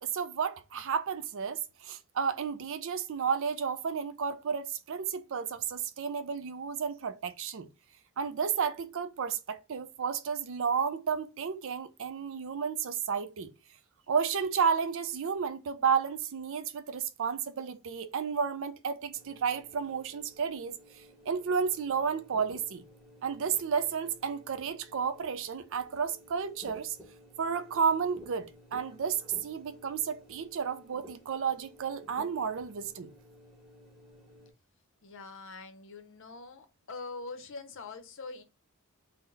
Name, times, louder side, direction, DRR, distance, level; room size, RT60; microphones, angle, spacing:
voice 1, 0.0-7.7 8.2-13.5 14.1-20.7 21.3-22.8 23.2-27.0 27.4-33.1, right 6 dB, 60° right, 0.4 m, -32 dB
sound 1, 19.1-34.5, equal, ahead, 1.0 m, -55 dB
voice 2, 35.0-38.4, left 3 dB, 60° left, 0.7 m, -44 dB
3.9 x 2.1 x 3.9 m
head